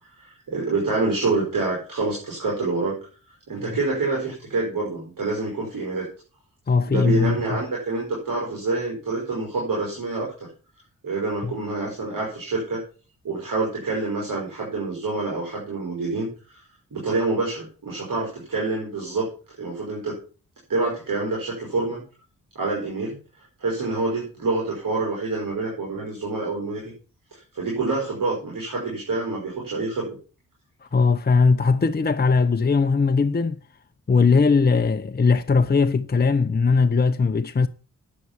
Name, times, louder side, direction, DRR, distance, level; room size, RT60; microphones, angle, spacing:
voice 1, 0.2-3.0 3.5-6.1 6.9-10.5 11.0-12.8 13.2-16.6 16.9-19.3 19.6-20.2 20.7-22.0 22.5-23.1 23.6-26.9 27.3-30.1, right 3 dB, 70° right, 5.1 m, -27 dB
voice 2, 6.7-7.6 11.4-11.5 30.9-33.6 34.1-37.7, left 4 dB, 30° left, 0.7 m, -19 dB
9.7 x 7.5 x 7.1 m
supercardioid pair, 45°, 34 cm